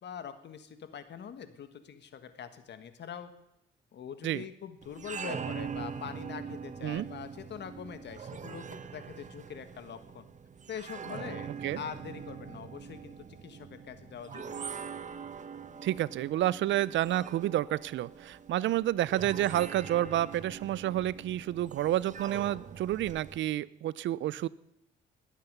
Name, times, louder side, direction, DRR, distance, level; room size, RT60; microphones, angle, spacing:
voice 1, 0.0-3.3 3.9-10.3 10.7-14.7, left 8 dB, 60° left, 10 dB, 1.5 m, -44 dB
sound 1, 4.8-23.4, right 6 dB, 40° right, 0.9 m, -43 dB
voice 2, 15.8-24.5, right 13 dB, 70° right, 21 dB, 0.5 m, -30 dB
20.0 x 8.3 x 6.7 m, 0.84 s
cardioid pair, 90°, 20 cm